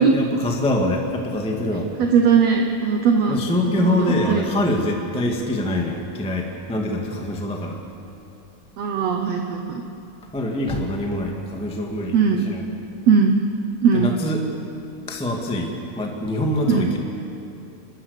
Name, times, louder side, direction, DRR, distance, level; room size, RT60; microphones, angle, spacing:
voice 1, 0.0-1.9 3.3-7.8 10.3-12.6 13.9-14.5 15.1-17.0, left 1 dB, 5° left, 1 dB, 1.1 m, -24 dB
voice 2, 2.0-3.4 3.8-4.4 8.8-9.8 12.1-12.4 13.1-13.4 13.8-14.1 16.7-16.9, right 6 dB, 65° right, 3 dB, 1.9 m, -19 dB
29.0 x 13.5 x 8.2 m, 2.8 s
omnidirectional pair, 3.8 m